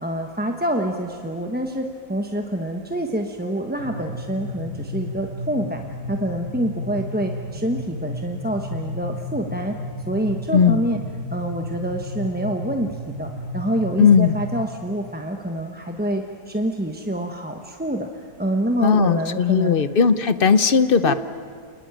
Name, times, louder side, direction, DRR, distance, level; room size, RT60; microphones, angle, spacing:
voice 1, 0.0-5.8 6.1-9.8 10.1-11.0 11.3-19.8 21.0-21.1, right 1 dB, 5° right, 4 dB, 0.9 m, -26 dB
sound 1, 3.8-14.6, left 1 dB, 40° right, 3.7 m, -33 dB
voice 2, 10.5-10.8 14.0-14.3 18.8-21.1, left 6 dB, 45° left, 13 dB, 0.7 m, -17 dB
29.0 x 20.5 x 9.1 m, 2.1 s
omnidirectional pair, 1.8 m